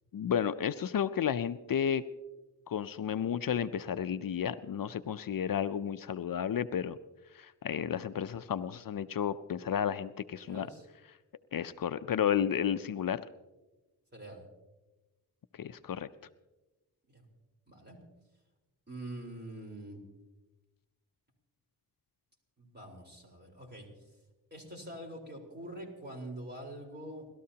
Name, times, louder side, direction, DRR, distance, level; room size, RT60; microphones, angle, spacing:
voice 1, 0.1-2.0 2.7-7.0 7.3-10.7 11.5-13.2 15.5-16.1, left 8 dB, 60° left, 13 dB, 0.5 m, -32 dB
voice 2, 10.4-10.9 14.1-14.4 17.1-17.3 17.7-18.0 18.9-20.0 22.6-24.1 24.5-27.3, right 1 dB, 25° right, 0 dB, 4.3 m, -45 dB
29.5 x 13.0 x 2.8 m, 1.1 s
wide cardioid pair, 75°, 38 cm